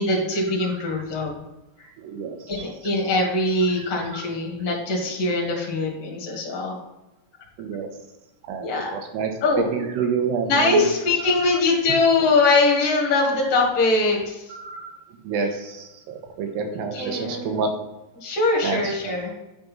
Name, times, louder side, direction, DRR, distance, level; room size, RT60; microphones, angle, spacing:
voice 1, 0.0-1.4 2.5-6.8 8.6-8.9 9.4-9.7 10.5-14.5 15.4-15.5 16.7-17.7 18.1-19.3, left 3 dB, 45° left, -2 dB, 2.3 m, -22 dB
voice 2, 2.0-2.5 3.7-4.3 7.6-7.9 8.4-9.3 9.7-10.9 14.5-15.0 15.2-17.7 18.6-19.1, right 6 dB, 75° right, 4 dB, 3.1 m, -29 dB
11.0 x 4.4 x 5.3 m, 0.99 s
omnidirectional pair, 5.2 m